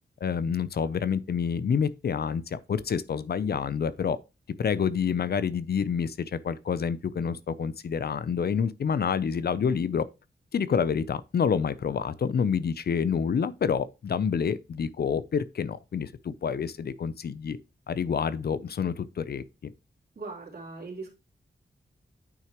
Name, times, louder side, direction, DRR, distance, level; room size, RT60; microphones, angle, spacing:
voice 1, 0.2-4.2 4.6-10.1 10.5-17.6 17.9-19.7, left 6 dB, 70° left, 0.6 m, -28 dB
voice 2, 20.1-21.1, right 3 dB, 65° right, 3.2 m, -39 dB
9.4 x 5.9 x 3.0 m
wide cardioid pair, 100°, 17 cm